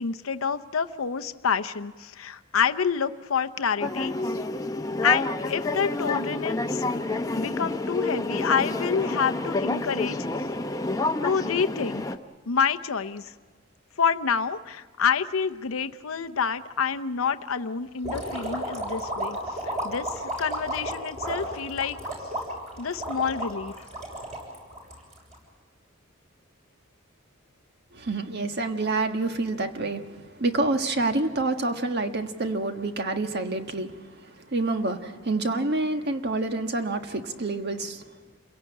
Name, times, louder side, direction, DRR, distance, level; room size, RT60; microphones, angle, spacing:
voice 1, 0.0-4.1 5.0-6.8 7.4-10.2 11.2-12.0 12.5-13.2 14.0-19.4 19.8-22.0 22.8-23.7, left 6 dB, 85° left, 9 dB, 0.7 m, -27 dB
sound 1, 3.8-12.2, left 2 dB, 15° left, 0.8 m, -29 dB
sound 2, 18.0-25.4, right 1 dB, 35° right, 6.9 m, -32 dB
voice 2, 27.9-38.1, right 2 dB, 55° right, 6 dB, 1.5 m, -28 dB
28.0 x 17.0 x 8.6 m, 1.5 s
head